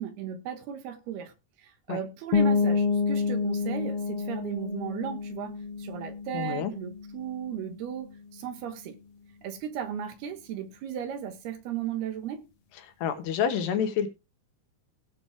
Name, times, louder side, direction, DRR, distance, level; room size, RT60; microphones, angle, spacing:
voice 1, 0.0-1.3 1.6-9.0 9.4-12.4, right 9 dB, 70° right, 3.1 m, -36 dB
sound 1, 2.3-7.9, left 5 dB, 60° left, 1.7 m, -29 dB
voice 2, 6.3-6.7 13.0-14.1, left 8 dB, 75° left, 3.3 m, -28 dB
18.0 x 7.0 x 3.4 m
omnidirectional pair, 5.0 m